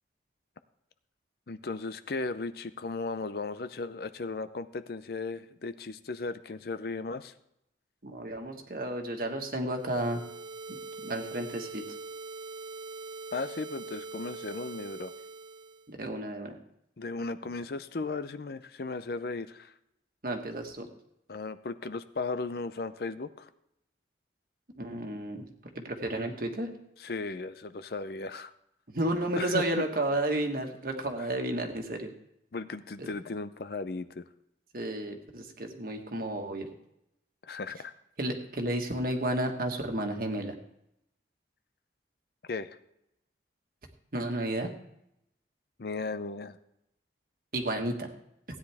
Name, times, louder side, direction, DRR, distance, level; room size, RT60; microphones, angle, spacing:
voice 1, 1.5-7.3 13.3-15.1 17.0-19.7 21.3-23.5 27.0-28.5 29.4-29.6 31.2-31.3 32.5-34.2 37.4-37.9 42.5-42.7 45.8-46.6, left 3 dB, 60° left, 12 dB, 0.6 m, -36 dB
voice 2, 8.0-10.2 11.0-11.8 15.9-16.6 20.2-20.9 24.8-25.4 25.7-26.7 28.9-32.1 33.0-33.1 34.7-36.7 38.2-40.5 44.1-44.7 47.5-48.1, right 1 dB, 55° right, 4 dB, 1.5 m, -32 dB
sound 1, 9.7-15.9, right 3 dB, 25° right, 0.5 m, -43 dB
16.0 x 9.7 x 3.5 m, 0.80 s
head